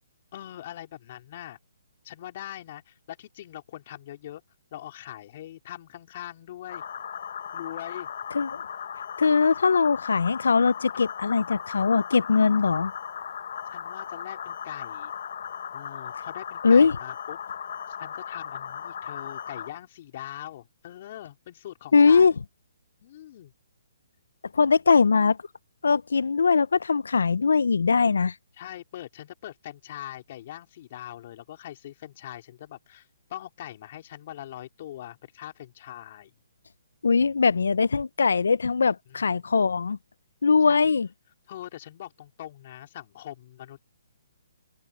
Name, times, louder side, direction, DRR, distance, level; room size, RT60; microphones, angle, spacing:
voice 1, 0.3-1.6 2.0-4.4 4.7-6.8 7.5-8.1 13.7-15.1 15.7-17.4 17.9-22.4 23.0-23.5 28.6-36.3 39.1-39.3 40.7-40.9 41.5-43.9, left 13 dB, 45° left, 4.1 m, -42 dB
sound 1, 6.7-19.7, left 8 dB, 60° left, 1.1 m, -37 dB
voice 2, 9.2-12.9 16.6-16.9 21.9-22.3 24.5-25.4 25.8-28.3 37.0-40.0 40.4-41.1, left 5 dB, 80° left, 0.5 m, -21 dB
open air
hypercardioid pair, 155°, 0 cm